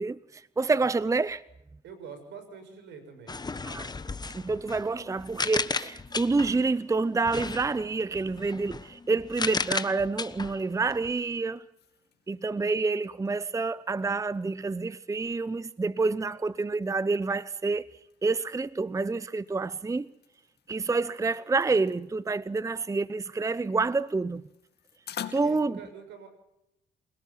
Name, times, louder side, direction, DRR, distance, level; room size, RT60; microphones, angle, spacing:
voice 1, 0.0-1.4 3.7-3.9 4.3-11.6 12.3-17.8 18.2-20.1 20.7-24.4 25.3-25.8, right 3 dB, 15° right, 0.7 m, -28 dB
voice 2, 1.8-3.4 25.4-26.3, right 6 dB, 75° right, 6.8 m, -45 dB
sound 1, 3.3-6.7 7.2-11.2, left 4 dB, 20° left, 1.2 m, -35 dB
sound 2, 10.8-25.7, left 9 dB, 60° left, 2.5 m, -50 dB
28.5 x 18.5 x 5.8 m
supercardioid pair, 75°, 19 cm